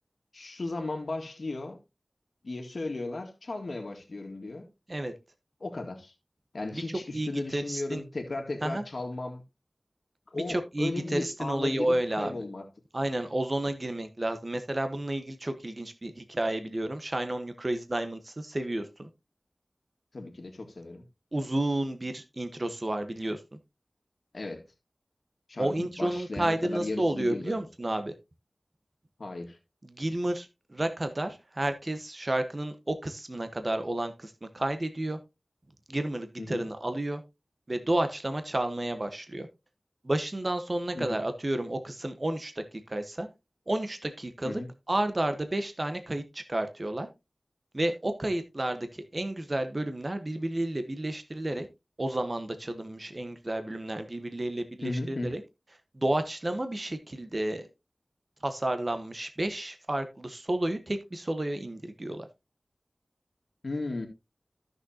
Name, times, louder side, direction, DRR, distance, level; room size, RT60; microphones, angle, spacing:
voice 1, 0.3-1.8 2.4-4.7 5.6-6.1 6.5-9.4 10.3-12.7 20.1-21.0 24.3-24.6 25.5-27.5 29.2-29.6 36.4-36.7 40.9-41.2 44.4-44.7 54.8-55.4 63.6-64.1, left 2 dB, 75° left, 1.9 m, -35 dB
voice 2, 7.1-8.0 8.6-8.8 10.3-12.3 12.9-19.1 21.3-23.4 25.6-28.1 29.8-35.2 35.9-37.2 37.7-39.5 40.0-42.5 42.9-43.3 43.7-44.6 44.9-47.1 47.7-51.7 52.0-55.4 55.9-57.7 58.4-62.2, right 1 dB, 40° right, 1.2 m, -31 dB
13.5 x 6.5 x 2.8 m
wide cardioid pair, 65°, 0 cm